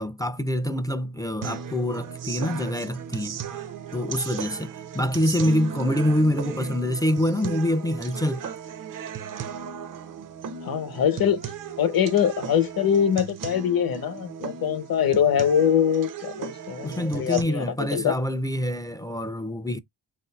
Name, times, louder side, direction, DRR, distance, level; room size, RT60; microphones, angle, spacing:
voice 1, 0.0-3.4 3.9-8.4 16.8-19.8, left 1 dB, 10° left, 0.3 m, -26 dB
sound 1, 1.4-17.4, right 7 dB, 50° right, 0.5 m, -36 dB
voice 2, 10.6-11.5 11.8-17.6 17.9-18.1, left 8 dB, 55° left, 0.9 m, -23 dB
3.6 x 2.6 x 2.2 m
cardioid pair, 55°, 43 cm